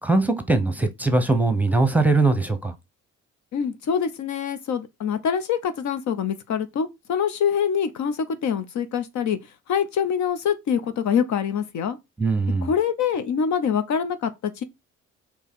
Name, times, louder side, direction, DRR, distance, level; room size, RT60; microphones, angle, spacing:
voice 1, 0.0-2.7 12.2-12.7, right 3 dB, 5° right, 0.8 m, -21 dB
voice 2, 3.5-9.4 9.7-12.0 12.6-14.6, left 7 dB, 70° left, 0.7 m, -25 dB
4.4 x 2.9 x 3.6 m
cardioid pair, 90°, 30 cm